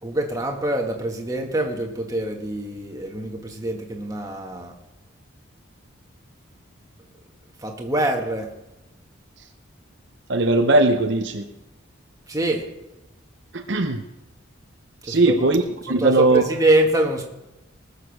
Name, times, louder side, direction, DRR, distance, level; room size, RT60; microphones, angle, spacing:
voice 1, 0.0-4.7 7.6-8.5 12.3-12.7 15.0-15.5 15.9-17.2, right 1 dB, 15° right, 2 dB, 1.6 m, -24 dB
voice 2, 10.3-11.5 13.5-14.0 15.1-16.4, right 2 dB, 55° right, 6 dB, 0.8 m, -19 dB
20.0 x 6.8 x 6.5 m, 0.97 s
head